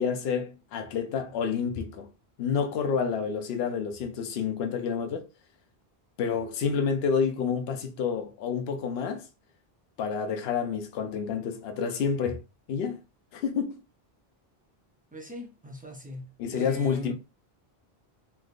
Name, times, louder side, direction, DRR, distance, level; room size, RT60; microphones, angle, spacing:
voice 1, 0.0-2.1 2.4-5.2 6.2-9.3 10.0-12.4 12.7-13.0 13.3-13.8 16.4-17.1, left 6 dB, 75° left, 0.8 m, -29 dB
voice 2, 15.1-17.1, equal, 10° right, 0.4 m, -41 dB
3.2 x 2.7 x 2.4 m
omnidirectional pair, 1.1 m